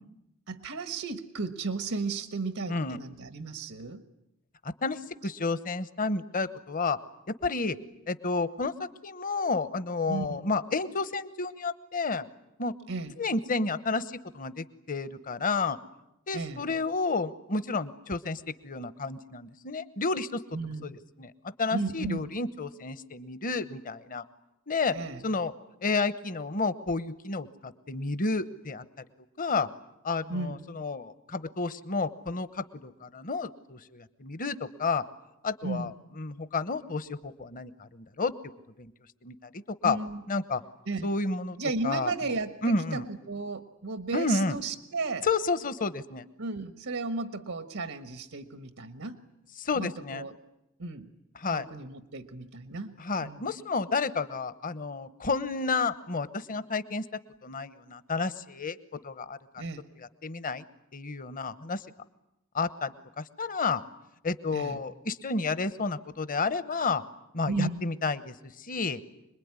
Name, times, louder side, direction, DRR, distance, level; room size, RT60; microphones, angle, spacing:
voice 1, 0.5-4.0 10.1-10.5 12.9-13.1 16.3-16.6 20.5-21.0 21.7-22.3 24.9-25.2 30.3-30.6 35.6-35.9 39.8-40.2 40.9-41.1 41.6-42.6 42.9-45.3 46.4-49.2 49.7-50.3 50.8-51.1 51.5-53.4 59.6-59.8 64.5-64.8 67.5-67.8, right 3 dB, 85° right, 10 dB, 1.4 m, -34 dB
voice 2, 4.8-7.0 7.3-7.8 8.1-8.7 9.0-12.3 12.6-12.7 13.2-15.8 16.3-20.4 20.8-21.3 21.6-24.2 24.7-24.9 25.2-25.5 25.8-28.8 29.4-29.7 30.0-35.0 35.4-35.9 36.2-38.3 38.8-38.9 39.2-40.0 40.3-40.6 41.0-41.6 41.8-42.3 42.6-43.0 44.1-44.6 45.2-46.2 49.6-50.2 51.4-51.6 53.0-57.0 57.4-58.8 59.0-59.4 60.0-60.6 60.9-61.8 62.5-63.8 64.2-67.0 67.3-69.0, left 3 dB, 40° left, 14 dB, 1.0 m, -31 dB
26.5 x 21.0 x 9.7 m, 0.88 s
head